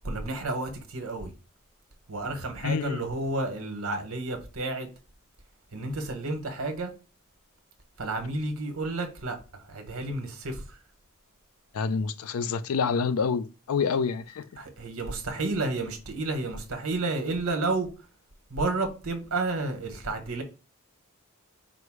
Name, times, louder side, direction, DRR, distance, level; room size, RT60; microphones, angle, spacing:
voice 1, 0.0-1.3 2.1-4.9 5.7-6.9 8.0-10.8 14.6-17.9 18.5-20.4, right 2 dB, 85° right, 1.3 m, -31 dB
voice 2, 2.6-3.0 11.7-14.5, left 5 dB, 90° left, 0.4 m, -27 dB
4.8 x 2.0 x 4.6 m
head